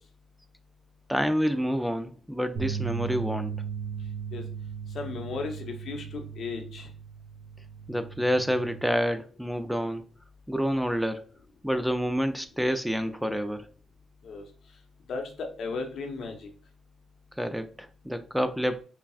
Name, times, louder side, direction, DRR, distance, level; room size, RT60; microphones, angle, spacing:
voice 1, 1.1-3.6 7.9-10.0 10.5-11.3 11.6-13.7 17.4-18.8, equal, ahead, 0.4 m, -28 dB
sound 1, 2.6-8.8, right 7 dB, 80° right, 1.0 m, -37 dB
voice 2, 4.9-6.9 14.2-14.4 15.1-16.4, left 4 dB, 70° left, 0.9 m, -35 dB
5.6 x 2.3 x 2.4 m
supercardioid pair, 65°, 0 cm